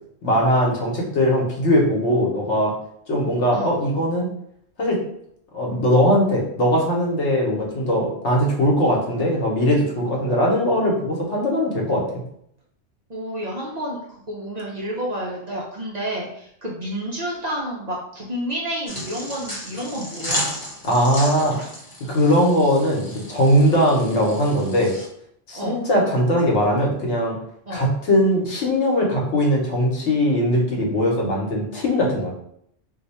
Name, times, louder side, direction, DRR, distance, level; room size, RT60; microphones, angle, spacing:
voice 1, 0.2-2.7 3.1-4.3 4.8-5.0 5.5-12.0 20.8-21.6 22.0-24.9 25.5-27.4 27.7-32.3, equal, 75° left, -2 dB, 1.2 m, -20 dB
voice 2, 13.1-20.4 22.6-22.7 25.5-25.9 27.7-27.9, equal, 45° right, -4 dB, 0.6 m, -30 dB
sound 1, 18.9-25.1, equal, 20° left, 0.7 m, -33 dB
2.7 x 2.2 x 4.1 m, 0.71 s
omnidirectional pair, 1.2 m